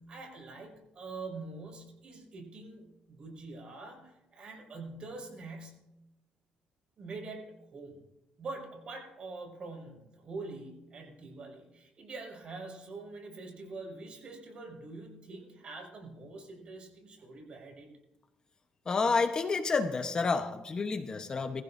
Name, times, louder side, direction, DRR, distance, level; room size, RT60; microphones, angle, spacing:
voice 1, 0.0-5.7 7.0-7.5 7.7-7.9 8.4-17.9, right 3 dB, 45° right, 1 dB, 6.0 m, -44 dB
voice 2, 18.9-21.6, left 4 dB, 30° left, 7 dB, 1.0 m, -29 dB
22.5 x 15.5 x 2.7 m, 0.91 s
cardioid pair, 115°, 2 cm